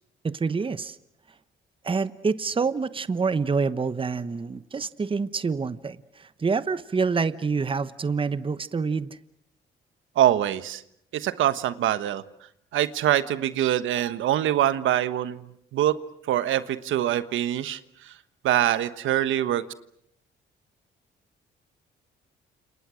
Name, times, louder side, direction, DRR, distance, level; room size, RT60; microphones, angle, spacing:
voice 1, 0.2-1.0 1.8-9.2, right 5 dB, 25° right, 14 dB, 1.0 m, -27 dB
voice 2, 10.1-10.8 11.1-12.2 12.7-15.4 15.7-16.0 16.3-18.1 18.4-19.6, right 12 dB, 80° right, 13 dB, 1.3 m, -24 dB
30.0 x 28.0 x 6.4 m, 0.73 s
cardioid pair, 90°, 20 cm